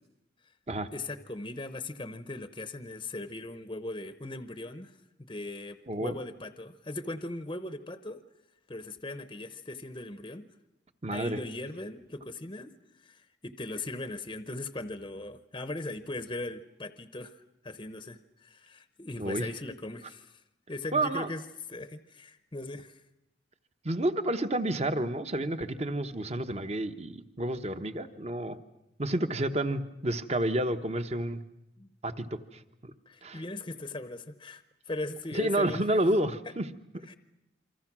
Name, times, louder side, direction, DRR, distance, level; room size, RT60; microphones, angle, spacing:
voice 1, 0.9-5.0 5.3-8.2 8.7-10.5 11.1-12.7 13.0-17.3 17.6-20.4 20.7-21.4 21.7-23.0 31.8-31.9 33.1-35.8 37.1-37.2, left 2 dB, 25° left, 11 dB, 0.8 m, -39 dB
voice 2, 11.0-11.4 19.2-19.5 20.9-21.3 23.8-28.6 29.0-31.4 32.0-32.6 33.2-33.4 35.3-36.7, right 1 dB, 35° right, 10 dB, 1.0 m, -30 dB
27.0 x 25.0 x 6.1 m, 0.89 s
head